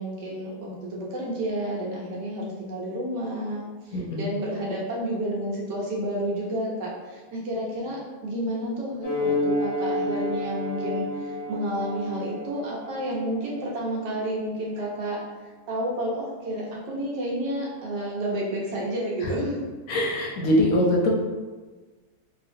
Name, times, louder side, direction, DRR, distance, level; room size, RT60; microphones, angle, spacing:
voice 1, 0.0-15.2 15.7-19.6, right 1 dB, 85° right, -4 dB, 1.4 m, -30 dB
voice 2, 3.9-4.2 19.9-21.1, left 1 dB, 70° left, -1 dB, 0.9 m, -22 dB
sound 1, 9.0-14.0, left 1 dB, 40° left, 0.3 m, -30 dB
2.9 x 2.7 x 2.5 m, 1.3 s
omnidirectional pair, 1.8 m